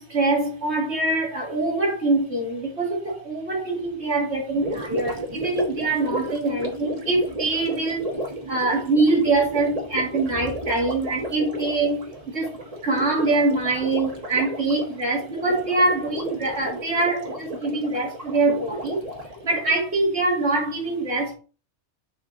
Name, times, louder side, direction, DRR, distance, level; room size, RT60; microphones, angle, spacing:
voice 1, 0.0-8.0 8.5-12.0 12.3-12.5 12.8-19.0 19.4-21.3, right 2 dB, 70° right, 2.3 m, -24 dB
Gurgling, 4.5-19.8, right 1 dB, 35° right, 1.3 m, -33 dB
7.1 x 3.6 x 4.0 m
omnidirectional pair, 1.2 m